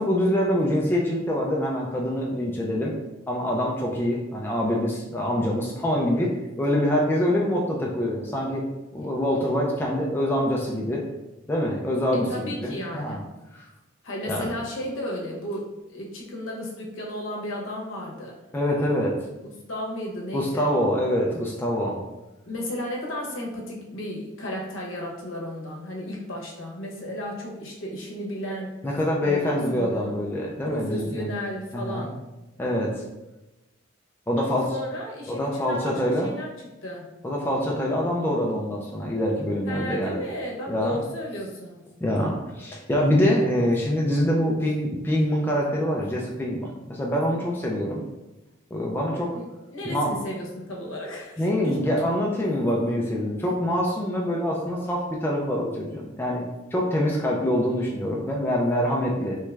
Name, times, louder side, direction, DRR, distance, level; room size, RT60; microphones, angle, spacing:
voice 1, 0.0-2.9 3.3-6.3 6.6-8.6 8.9-11.0 11.5-13.2 13.5-13.7 14.3-14.5 18.5-19.2 20.3-22.0 28.8-31.3 31.7-32.1 32.6-32.9 34.3-34.7 35.3-36.3 37.2-40.2 40.7-41.0 42.0-48.0 48.7-49.4 49.8-50.2 51.4-56.4 56.7-59.4, equal, 10° left, -3 dB, 0.3 m, -25 dB
voice 2, 12.1-13.2 14.0-18.3 19.4-20.7 22.5-28.7 29.2-30.1 30.6-32.1 34.4-36.5 36.8-37.1 39.7-41.8 49.3-52.0, left 1 dB, 75° left, -2 dB, 0.8 m, -34 dB
3.0 x 2.3 x 3.2 m, 1.0 s
head